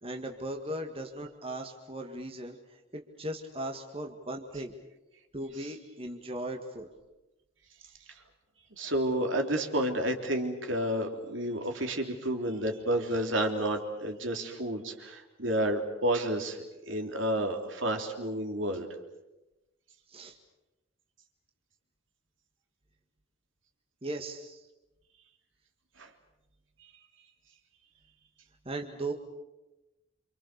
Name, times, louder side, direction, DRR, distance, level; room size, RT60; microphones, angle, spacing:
voice 1, 0.0-2.6 2.9-4.7 5.3-6.9 20.1-20.4 24.0-24.6 28.7-29.1, right 1 dB, 30° right, 3 dB, 1.9 m, -38 dB
voice 2, 8.7-18.9 26.0-26.1 26.8-26.9, right 1 dB, 70° right, 3 dB, 3.4 m, -30 dB
28.0 x 26.5 x 6.8 m, 1.0 s
head